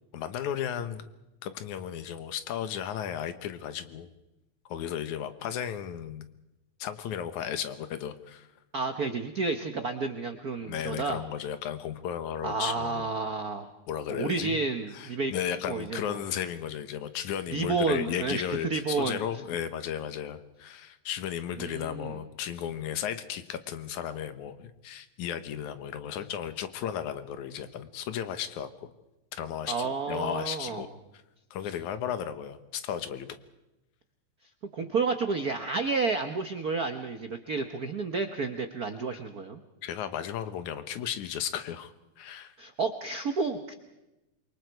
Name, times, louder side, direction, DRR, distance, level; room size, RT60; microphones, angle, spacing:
voice 1, 0.1-1.1 1.4-4.1 4.7-6.3 6.8-8.5 10.6-13.1 13.9-14.6 14.9-28.9 29.3-30.9 31.5-33.3 39.1-39.2 39.8-42.5, left 9 dB, 80° left, 10 dB, 2.5 m, -35 dB
voice 2, 8.7-11.2 12.4-13.7 14.1-15.3 15.7-16.2 17.5-19.2 21.6-22.2 29.7-30.8 34.7-39.6 42.6-43.7, right 4 dB, 80° right, 7 dB, 0.8 m, -30 dB
28.0 x 23.5 x 4.7 m, 0.98 s
omnidirectional pair, 3.4 m